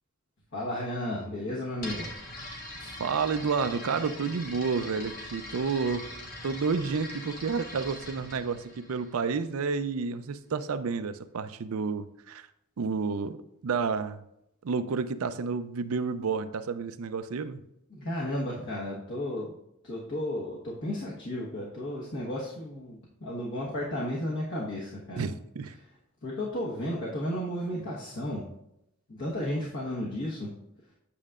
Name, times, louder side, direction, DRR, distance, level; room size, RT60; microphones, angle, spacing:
voice 1, 0.5-2.1 17.9-19.5 19.8-25.3 26.2-28.4 29.1-30.5, left 1 dB, 60° left, -5 dB, 1.2 m, -33 dB
sound 1, 1.8-9.6, left 1 dB, 40° left, 1.3 m, -42 dB
voice 2, 3.0-6.1 6.4-12.5 12.8-13.4 13.6-14.2 14.6-17.6 25.2-25.7, right 5 dB, 80° right, 11 dB, 0.5 m, -30 dB
8.5 x 6.4 x 2.4 m, 0.79 s
head